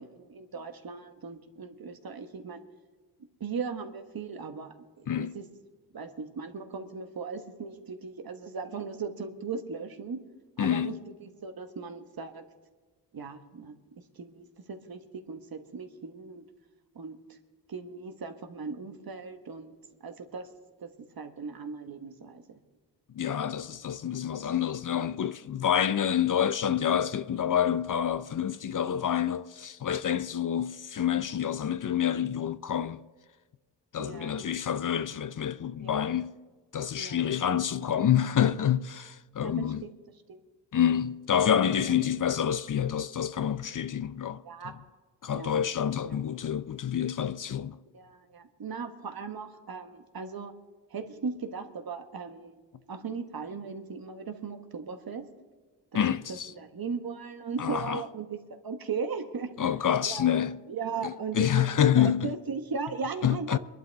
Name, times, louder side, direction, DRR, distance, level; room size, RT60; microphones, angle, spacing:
voice 1, 0.0-2.6 3.4-5.4 5.9-10.2 10.6-10.9 11.2-12.4 13.1-16.4 16.9-17.4 17.7-19.8 20.0-20.5 20.8-20.9 21.2-22.6 30.4-30.5 34.0-34.4 35.8-36.2 37.0-37.2 39.4-39.9 40.3-40.4 44.4-44.7 45.3-45.6 46.0-46.2 47.9-50.5 50.9-52.6 52.9-55.3 55.9-56.0 56.3-58.4 58.6-59.7 60.0-60.4 60.7-63.6, right 5 dB, 55° right, 1.5 m, -38 dB
voice 2, 10.6-10.9 23.1-33.0 33.9-36.3 36.7-39.8 40.7-44.4 45.2-47.8 55.9-56.5 57.6-58.0 59.6-60.6 61.0-62.3 63.2-63.6, left 9 dB, 45° left, 0.6 m, -27 dB
22.5 x 11.5 x 3.5 m
cardioid pair, 70°, 43 cm